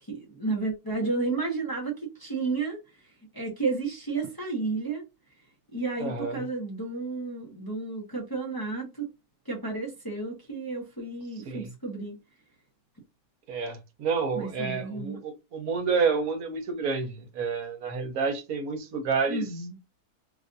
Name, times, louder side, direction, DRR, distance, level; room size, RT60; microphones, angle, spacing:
voice 1, 0.0-5.0 5.7-9.1 9.4-12.2 14.3-15.2 19.3-19.8, right 3 dB, 20° left, 0.7 m, -32 dB
voice 2, 6.0-6.4 11.5-11.7 13.5-19.4, right 5 dB, 75° right, 1.2 m, -29 dB
3.2 x 2.5 x 2.6 m
omnidirectional pair, 1.6 m